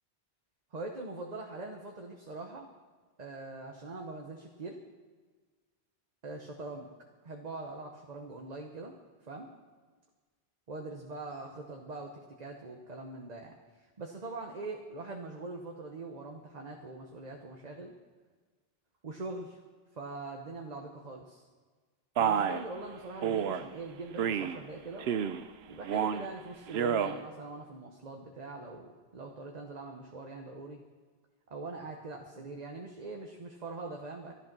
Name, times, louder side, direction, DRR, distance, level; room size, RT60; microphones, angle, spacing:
voice 1, 0.7-2.7 3.2-4.8 6.2-6.9 7.2-8.9 9.3-9.5 10.7-12.1 12.4-13.5 14.0-17.9 19.0-19.6 19.9-21.4 22.2-25.1 25.7-30.8 31.5-34.3, right 3 dB, 40° right, 2 dB, 1.1 m, -42 dB
Male speech man speaking, 22.2-22.6 23.2-23.6 24.2-24.6 25.0-25.4 25.8-26.3 26.7-27.1, right 8 dB, 80° right, 0.9 m, -29 dB
13.0 x 11.5 x 6.0 m, 1.4 s
omnidirectional pair, 1.1 m